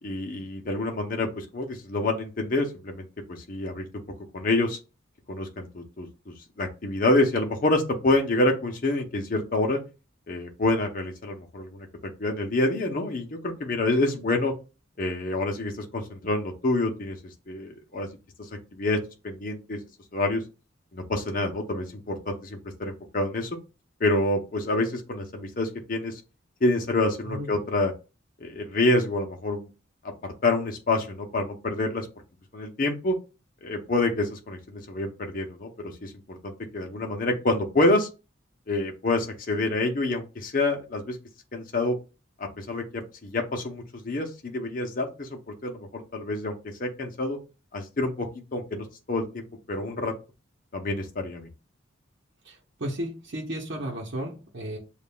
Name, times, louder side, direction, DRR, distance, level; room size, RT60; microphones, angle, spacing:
voice 1, 0.0-3.9 4.3-4.8 5.3-9.8 10.3-11.9 12.2-14.5 15.0-17.2 17.5-18.1 18.7-19.0 19.2-19.8 20.1-20.4 20.9-23.6 24.0-26.1 26.6-27.9 28.4-29.7 30.2-32.1 32.5-33.1 33.6-38.1 38.7-41.2 41.5-41.9 42.4-46.5 46.8-47.4 47.7-48.3 48.5-50.1 50.7-51.5, left 2 dB, 45° left, 3 dB, 0.7 m, -27 dB
voice 2, 52.4-54.8, right 1 dB, 60° right, -2 dB, 0.9 m, -34 dB
7.1 x 2.4 x 2.2 m, 0.30 s
head